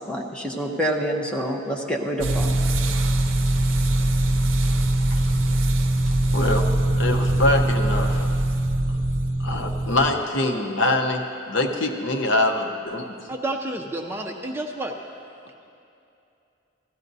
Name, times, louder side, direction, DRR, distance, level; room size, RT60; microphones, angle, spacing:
voice 1, 0.1-2.5, equal, 5° left, -1 dB, 0.8 m, -27 dB
sound 1, 2.2-10.1, right 1 dB, 70° right, 0.6 m, -22 dB
voice 2, 6.3-6.6 6.9-8.3 9.4-13.1, left 2 dB, 65° left, 3 dB, 0.9 m, -24 dB
voice 3, 13.3-14.9, right 1 dB, 10° right, 2 dB, 0.5 m, -30 dB
16.5 x 13.5 x 2.7 m, 2.6 s
head